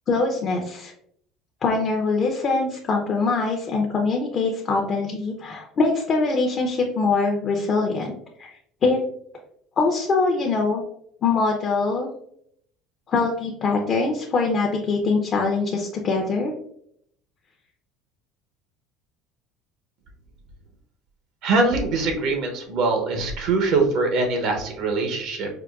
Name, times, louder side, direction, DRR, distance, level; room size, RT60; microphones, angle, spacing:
voice 1, 0.1-0.9 1.6-8.1 8.4-8.5 8.8-9.0 9.8-10.8 11.2-12.1 13.1-16.5, left 3 dB, 40° left, 1 dB, 0.5 m, -23 dB
voice 2, 21.4-25.5, right 3 dB, 65° right, 3 dB, 0.7 m, -23 dB
4.6 x 2.2 x 2.3 m, 0.70 s
supercardioid pair, 105°, 0 cm